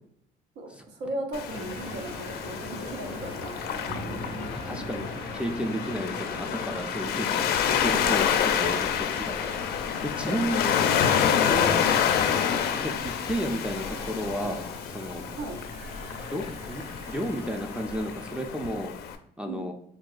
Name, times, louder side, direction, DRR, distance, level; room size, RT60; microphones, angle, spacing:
voice 1, 0.6-4.2 8.2-8.5 10.3-10.7 11.3-11.5 15.4-15.6 19.4-19.7, right 2 dB, 85° right, 4 dB, 0.7 m, -37 dB
Waves surf, 1.3-19.2, left 8 dB, 70° left, 0.4 m, -28 dB
sound 1, 1.5-18.4, right 1 dB, 45° right, 1.4 m, -42 dB
voice 2, 4.6-9.5 10.0-10.9 11.4-11.8 12.7-12.9 13.3-15.2 16.3-18.9 19.4-19.7, equal, 5° right, 4 dB, 0.4 m, -33 dB
3.6 x 2.3 x 2.4 m, 0.69 s
cardioid pair, 110°, 17 cm